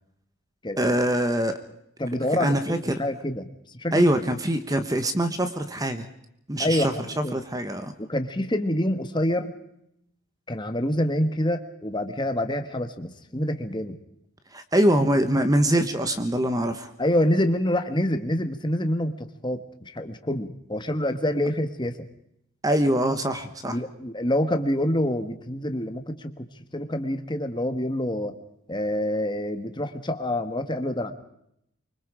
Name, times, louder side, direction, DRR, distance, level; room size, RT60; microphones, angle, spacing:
voice 1, 0.8-1.5 2.4-3.0 3.9-6.1 6.5-7.9 14.5-16.9 22.6-23.8, right 1 dB, 15° right, 9 dB, 1.2 m, -23 dB
voice 2, 2.0-3.5 3.7-4.1 6.6-6.9 7.2-7.4 8.0-9.5 10.5-14.0 17.0-22.0 23.6-26.5 26.7-28.3 28.7-31.1, left 1 dB, 20° left, 8 dB, 1.5 m, -26 dB
25.0 x 24.0 x 5.0 m, 0.76 s
head